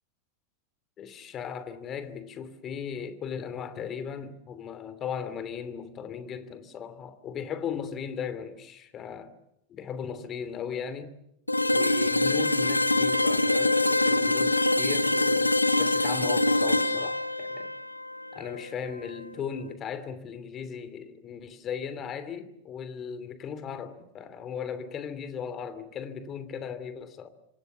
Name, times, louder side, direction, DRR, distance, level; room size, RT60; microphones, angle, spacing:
voice 1, 1.0-9.3 9.7-11.1 11.7-17.7 18.3-27.3, left 7 dB, 30° left, 2.8 m, -37 dB
sound 1, 11.5-19.3, left 2 dB, 85° left, 1.6 m, -25 dB
27.0 x 26.0 x 7.2 m
figure-of-eight pair, 90°, 0 cm